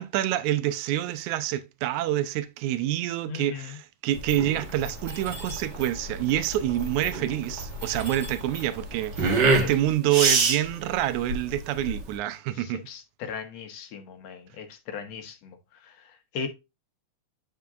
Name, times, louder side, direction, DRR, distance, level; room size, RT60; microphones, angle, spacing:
voice 1, 0.0-12.8, right 13 dB, 85° right, 2.1 m, -27 dB
voice 2, 3.3-3.8 9.6-9.7 12.5-15.6 15.8-16.5, left 6 dB, 70° left, 2.1 m, -38 dB
sound 1, 4.1-12.1, right 4 dB, 45° right, 1.7 m, -26 dB
Mechanisms, 4.3-9.7, left 1 dB, 20° right, 1.6 m, -39 dB
9.4 x 4.7 x 2.4 m
omnidirectional pair, 3.4 m